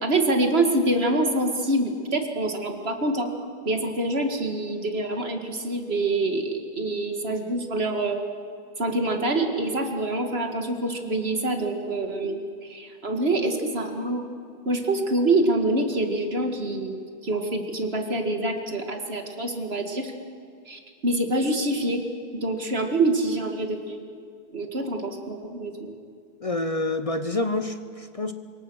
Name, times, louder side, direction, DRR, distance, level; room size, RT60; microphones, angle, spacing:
voice 1, 0.0-3.3 3.7-8.2 8.8-14.2 14.7-16.9 17.2-20.1 20.7-22.0 22.4-24.0 24.5-25.9, right 2 dB, 65° right, 5 dB, 2.4 m, -26 dB
voice 2, 26.4-28.3, left 2 dB, 35° left, 9 dB, 0.9 m, -27 dB
26.0 x 23.0 x 6.4 m, 2.4 s
omnidirectional pair, 1.1 m